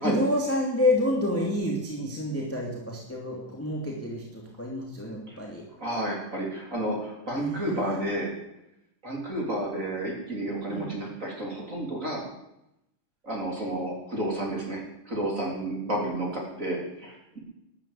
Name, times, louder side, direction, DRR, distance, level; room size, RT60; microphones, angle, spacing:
voice 1, 0.0-5.6 7.3-8.0 10.7-10.9, left 1 dB, 5° left, -1 dB, 2.4 m, -29 dB
voice 2, 5.8-8.3 9.0-12.2 13.2-17.4, right 1 dB, 25° right, -2 dB, 3.9 m, -31 dB
13.0 x 10.5 x 8.5 m, 0.86 s
omnidirectional pair, 3.5 m